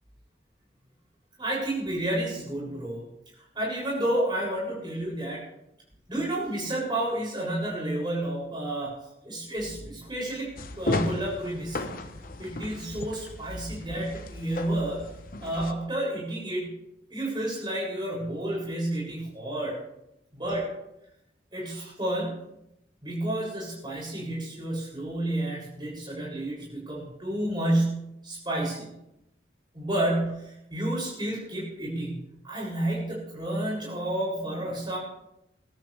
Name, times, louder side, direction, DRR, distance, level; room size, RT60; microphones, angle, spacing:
voice 1, 1.4-3.0 3.5-5.4 6.1-8.9 9.2-10.5 10.8-11.9 12.4-15.1 15.4-16.7 17.1-19.8 20.4-20.7 21.5-22.4 23.0-28.9 29.7-35.0, right 1 dB, 25° right, -5 dB, 7.2 m, -30 dB
sound 1, 10.6-15.7, left 2 dB, 50° left, 0.9 m, -34 dB
21.5 x 13.5 x 3.5 m, 0.86 s
head